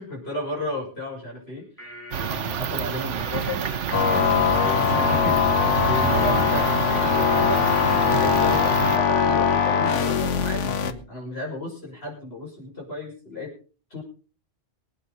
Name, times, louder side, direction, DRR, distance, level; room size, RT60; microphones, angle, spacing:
voice 1, 0.0-7.7 8.1-13.5 13.9-14.0, left 1 dB, 60° left, -2 dB, 6.8 m, -34 dB
sound 1, 1.6-8.5, left 1 dB, 10° left, 7.6 m, -43 dB
sound 2, 2.1-9.0, right 8 dB, 85° right, 1.2 m, -28 dB
sound 3, 3.9-10.9, left 7 dB, 85° left, 1.4 m, -21 dB
23.5 x 9.4 x 4.1 m, 0.37 s
omnidirectional pair, 1.2 m